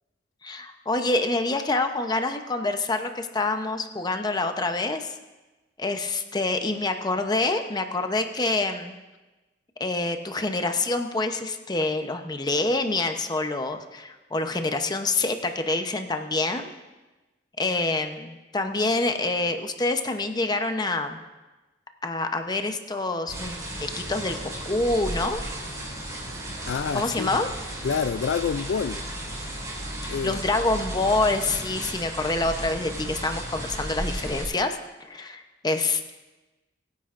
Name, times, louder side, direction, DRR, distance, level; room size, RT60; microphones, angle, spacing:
voice 1, 0.4-5.2 5.8-8.9 9.8-16.7 17.6-21.2 22.0-23.5 23.8-25.4 26.9-27.5 30.0-36.1, left 2 dB, 25° left, 6 dB, 0.8 m, -26 dB
sound 1, 23.3-34.4, right 1 dB, 20° right, 4.4 m, -34 dB
voice 2, 26.7-27.4 27.8-29.1 30.1-30.4, left 6 dB, 80° left, 13 dB, 0.4 m, -28 dB
23.0 x 9.7 x 2.6 m, 1.1 s
head